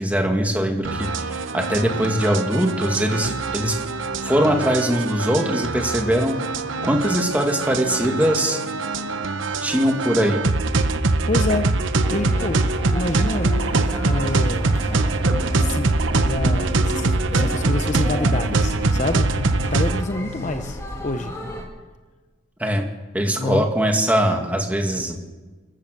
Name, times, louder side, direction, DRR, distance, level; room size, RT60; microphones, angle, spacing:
voice 1, 0.0-3.8 4.2-6.4 6.8-8.6 9.6-10.4 22.6-22.9 23.1-25.2, equal, 10° right, 2 dB, 2.2 m, -21 dB
sound 1, 0.8-20.0, right 3 dB, 70° right, 0.9 m, -23 dB
voice 2, 11.3-12.6 12.9-13.5 14.0-14.8 15.5-19.3 19.7-21.3 23.4-23.7, left 2 dB, 35° left, 8 dB, 0.7 m, -27 dB
sound 2, 12.0-21.7, left 1 dB, 15° left, 2.5 m, -33 dB
27.5 x 14.5 x 6.6 m, 1.3 s
head